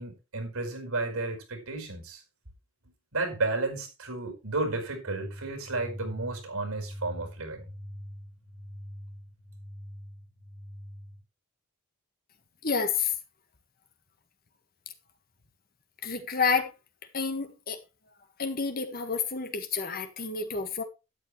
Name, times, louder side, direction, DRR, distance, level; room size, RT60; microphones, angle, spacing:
voice 1, 0.0-2.2 3.1-7.7, right 2 dB, 90° right, 5.1 m, -32 dB
sound 1, 5.1-11.2, equal, 5° left, 6.2 m, -44 dB
voice 2, 12.6-13.1 16.0-16.7 17.1-17.8 18.4-20.8, left 5 dB, 45° left, 1.8 m, -29 dB
13.0 x 10.0 x 3.3 m
head